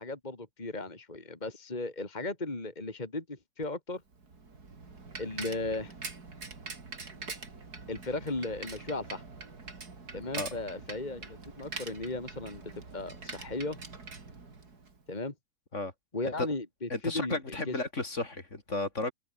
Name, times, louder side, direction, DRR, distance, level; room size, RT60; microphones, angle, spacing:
voice 1, 0.0-4.0 5.2-5.9 7.9-9.2 10.1-13.8 15.1-15.3 16.1-17.7, left 2 dB, 30° left, 2.8 m, -36 dB
Bicycle, 4.1-15.0, right 4 dB, 80° right, 3.8 m, -44 dB
voice 2, 16.9-19.1, left 2 dB, 50° left, 3.8 m, -33 dB
omnidirectional pair, 1.6 m